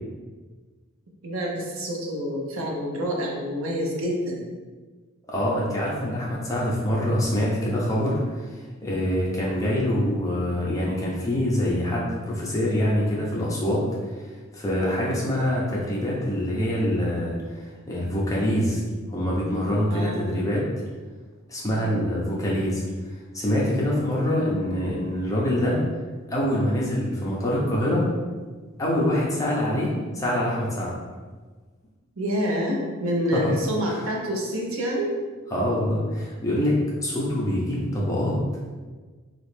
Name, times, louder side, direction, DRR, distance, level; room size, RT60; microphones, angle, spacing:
voice 1, 1.2-4.5 19.9-20.2 21.8-22.1 32.2-35.1, equal, 70° right, -1 dB, 0.7 m, -28 dB
voice 2, 5.3-8.2 8.8-13.8 14.5-18.8 19.1-20.6 21.5-22.8 23.3-25.8 26.3-28.0 28.8-30.9 33.3-33.4 33.9-34.0 35.5-38.4, left 1 dB, 15° left, -5 dB, 0.7 m, -25 dB
3.1 x 2.5 x 3.2 m, 1.4 s
head